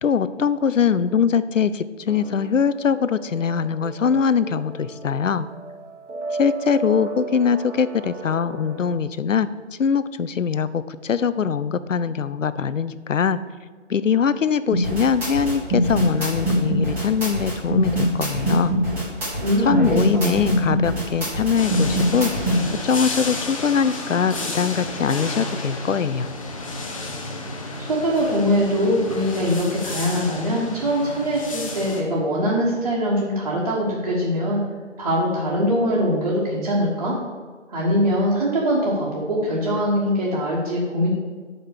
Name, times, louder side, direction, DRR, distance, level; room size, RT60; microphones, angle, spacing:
voice 1, 0.0-5.5 6.4-9.5 9.8-13.4 13.9-18.7 19.6-22.3 22.8-26.3, left 6 dB, 85° left, 14 dB, 0.6 m, -22 dB
sound 1, 2.1-8.9, right 3 dB, 70° right, 0.9 m, -35 dB
sound 2, 14.7-22.6, right 1 dB, 5° right, 1.1 m, -23 dB
voice 2, 19.4-20.4 27.8-34.6 35.0-37.1 37.7-41.1, equal, 35° right, -5 dB, 1.4 m, -22 dB
sound 3, 21.5-32.0, left 2 dB, 25° left, 0.8 m, -31 dB
5.9 x 5.2 x 6.5 m, 1.5 s
figure-of-eight pair, 155°, 37 cm